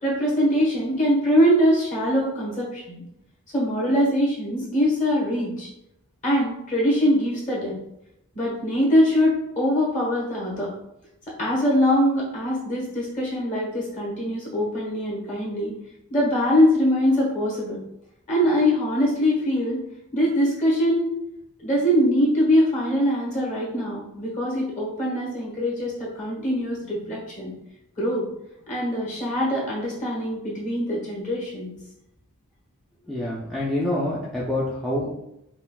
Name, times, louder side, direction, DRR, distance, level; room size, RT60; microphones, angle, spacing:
voice 1, 0.0-3.0 3.5-5.7 6.2-7.7 8.3-10.7 11.4-15.7 16.1-17.8 18.3-19.8 20.1-21.1 21.6-27.5 28.0-28.2 28.7-31.7, equal, 35° left, -4 dB, 1.2 m, -22 dB
voice 2, 33.1-35.2, left 1 dB, ahead, -8 dB, 0.4 m, -26 dB
5.4 x 2.3 x 2.2 m, 0.82 s
head